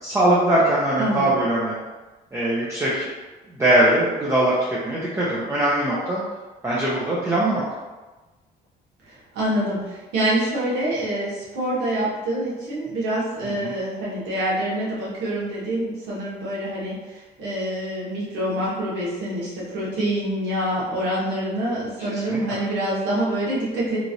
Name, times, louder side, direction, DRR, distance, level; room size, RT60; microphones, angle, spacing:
voice 1, 0.0-1.7 2.3-3.1 3.5-6.2 6.6-7.6 13.4-13.7 22.1-22.6, right 1 dB, 15° right, -7 dB, 0.6 m, -21 dB
voice 2, 1.0-1.4 9.0-24.1, right 1 dB, 85° right, -7 dB, 1.2 m, -26 dB
3.1 x 2.4 x 2.7 m, 1.2 s
cardioid pair, 110°, 17 cm